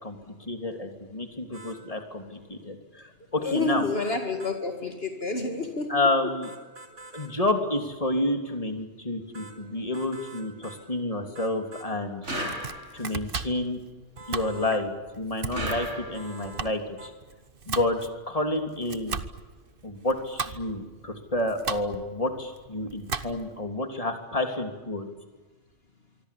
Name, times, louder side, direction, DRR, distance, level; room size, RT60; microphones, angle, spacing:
voice 1, 0.0-3.9 5.9-6.5 7.1-12.3 12.9-13.8 14.3-17.1 17.7-18.0 18.3-19.2 19.8-25.1, left 2 dB, 30° left, 5 dB, 3.2 m, -29 dB
sound 1, 1.5-1.8 4.0-4.6 6.4-7.3 9.3-9.6 9.9-10.8 11.3-11.9 14.2-14.8 16.1-16.7 17.0-17.1, right 2 dB, 90° right, 3.7 m, -46 dB
voice 2, 3.4-5.9, left 3 dB, 55° left, 4 dB, 2.5 m, -29 dB
sound 2, 12.2-13.2 15.5-16.5, equal, 75° right, 6.6 m, -34 dB
Domestic sounds home sounds, 12.3-23.6, right 5 dB, 50° right, 1.3 m, -37 dB
25.0 x 24.5 x 8.6 m, 1.2 s
omnidirectional pair, 1.2 m